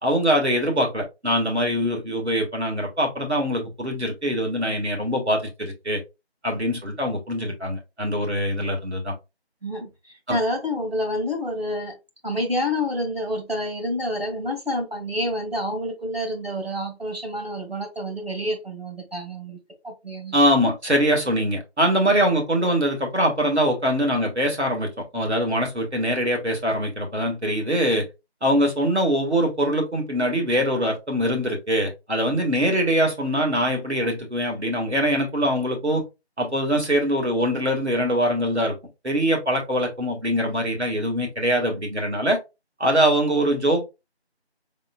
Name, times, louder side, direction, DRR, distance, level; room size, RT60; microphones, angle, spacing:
voice 1, 0.0-6.0 6.4-9.1 10.3-10.4 20.3-28.1 28.4-36.0 36.4-38.8 39.0-42.4 42.8-43.8, equal, 85° right, 1.9 m, -23 dB
voice 2, 9.6-12.0 12.2-20.4, left 1 dB, 65° right, 1.7 m, -28 dB
4.6 x 3.6 x 2.2 m
figure-of-eight pair, 175°, 33 cm